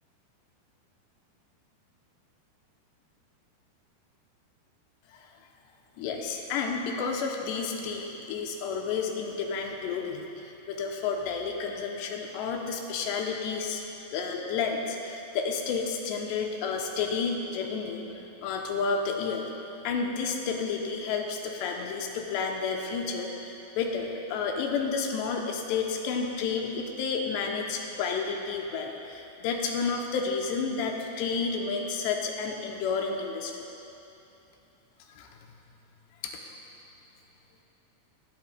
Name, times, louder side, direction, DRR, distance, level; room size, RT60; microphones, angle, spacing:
voice 1, 6.0-13.8 14.1-18.0 18.4-19.4 19.8-33.6 35.1-35.3 36.2-36.5, left 5 dB, 85° left, 1 dB, 2.8 m, -31 dB
19.0 x 8.1 x 2.2 m, 2.9 s
omnidirectional pair, 4.9 m